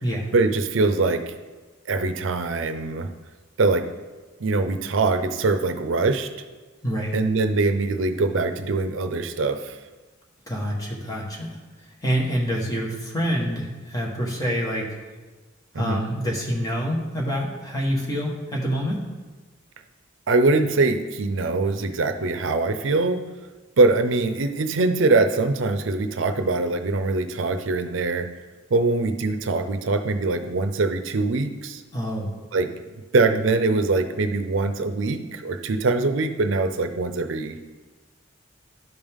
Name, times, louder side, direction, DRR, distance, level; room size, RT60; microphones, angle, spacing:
voice 1, 0.3-1.3 1.9-3.1 3.6-3.9 4.4-6.3 7.1-9.8 15.7-16.0 20.3-23.2 23.8-28.3 28.7-31.8 32.5-32.7 33.1-37.7, right 3 dB, 75° right, 9 dB, 0.5 m, -23 dB
voice 2, 6.8-7.1 10.5-11.5 11.8-14.9 15.7-19.0 31.9-32.3, equal, 20° left, -3 dB, 1.4 m, -26 dB
10.5 x 5.3 x 3.6 m, 1.3 s
head